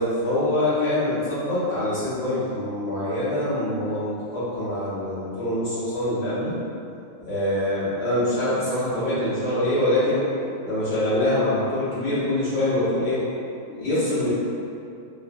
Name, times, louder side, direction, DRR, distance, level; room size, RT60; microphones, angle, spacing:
voice 1, 0.0-6.6 7.2-10.3 10.6-13.2 13.7-14.3, left 1 dB, 55° left, -13 dB, 1.0 m, -24 dB
3.0 x 2.1 x 2.5 m, 2.6 s
omnidirectional pair, 1.5 m